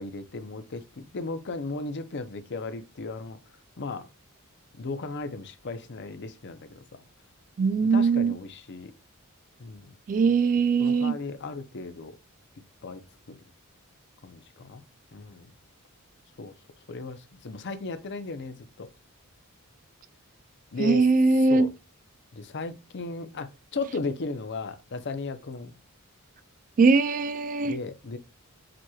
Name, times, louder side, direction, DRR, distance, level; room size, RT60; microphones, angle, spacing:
voice 1, 0.0-3.4 3.8-4.1 4.8-7.0 7.8-8.9 9.6-10.0 10.3-10.4 10.8-12.2 12.8-13.4 14.2-14.8 15.1-15.5 16.4-16.6 16.9-18.9 20.7-21.1 21.5-21.7 22.3-25.7 27.6-28.2, left 3 dB, 55° left, 0.6 m, -36 dB
voice 2, 7.6-8.4 10.1-11.2 20.8-21.7 26.8-27.7, right 4 dB, 35° right, 0.3 m, -21 dB
7.5 x 2.9 x 2.3 m
head